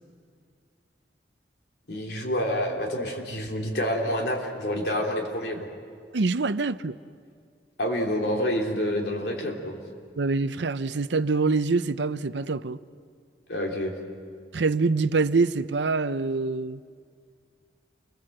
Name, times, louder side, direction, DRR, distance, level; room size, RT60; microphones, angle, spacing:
voice 1, 1.9-5.7 7.8-9.8 13.5-13.9, equal, 65° left, 3.3 m, -28 dB
voice 2, 6.1-6.9 10.2-12.8 14.5-16.8, right 3 dB, 85° right, 0.7 m, -25 dB
29.0 x 23.0 x 7.8 m
head